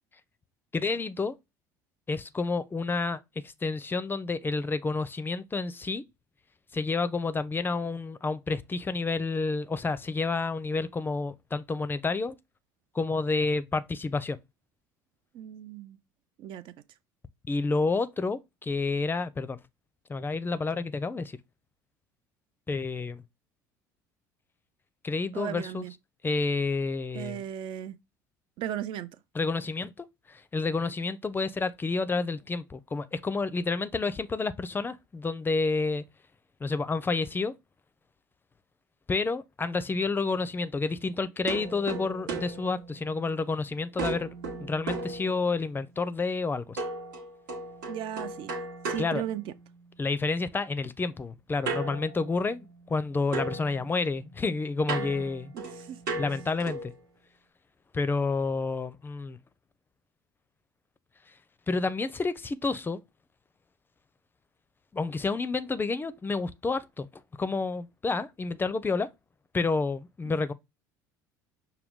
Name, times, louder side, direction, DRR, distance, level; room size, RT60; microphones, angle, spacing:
voice 1, 0.7-1.4 2.1-6.0 6.7-12.3 12.9-14.4 17.5-19.6 20.1-21.4 22.7-23.2 25.0-25.8 26.2-27.4 29.3-36.0 36.6-37.5 39.1-44.3 44.6-46.8 49.0-49.2 50.0-55.5 56.2-56.9 57.9-59.4 61.7-63.0 64.9-69.1 69.5-70.5, left 3 dB, 20° left, 0.5 m, -29 dB
voice 2, 15.3-16.0 16.4-16.7 25.3-25.9 27.1-28.0 28.6-29.1 47.9-48.5 48.9-49.4 55.0-56.0, right 11 dB, 55° right, 0.5 m, -36 dB
sound 1, 41.5-43.6 44.0-45.8 46.8-50.0 51.7-53.0 53.3-57.0, right 3 dB, 80° right, 1.1 m, -37 dB
5.6 x 2.2 x 3.6 m
hypercardioid pair, 65°, 10 cm